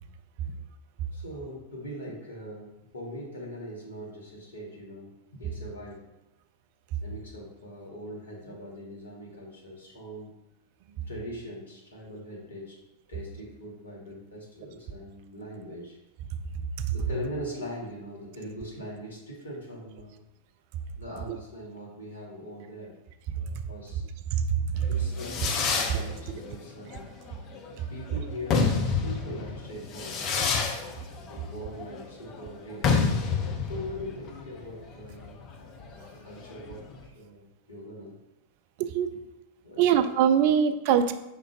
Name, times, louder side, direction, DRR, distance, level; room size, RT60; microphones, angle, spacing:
voice 1, 1.1-6.1 7.0-10.4 11.1-12.8 13.1-16.0 16.9-20.2 21.0-22.9 23.3-24.0 24.9-27.0 27.9-30.3 31.3-33.2 33.6-35.4 35.9-38.1 39.6-39.8, equal, 75° left, -3 dB, 1.3 m, -41 dB
Fireworks, 24.8-37.0, left 5 dB, 35° left, 0.6 m, -29 dB
voice 2, 38.8-39.2 39.8-41.1, right 8 dB, 50° right, 10 dB, 0.3 m, -23 dB
5.4 x 3.7 x 2.4 m, 0.94 s
figure-of-eight pair, 90°, 0 cm